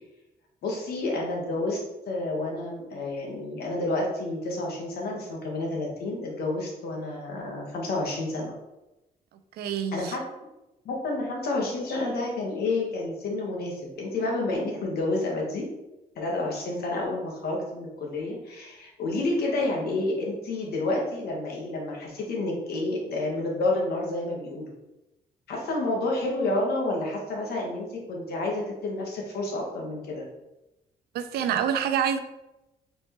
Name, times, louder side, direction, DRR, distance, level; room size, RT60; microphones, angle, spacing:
voice 1, 0.6-8.5 9.9-10.2 10.8-15.6 16.1-24.7 25.5-30.2, left 2 dB, 80° left, -1 dB, 1.2 m, -29 dB
voice 2, 9.5-10.2 31.1-32.2, right 8 dB, 85° right, 10 dB, 0.4 m, -27 dB
4.2 x 3.4 x 2.9 m, 0.96 s
cardioid pair, 105°, 16 cm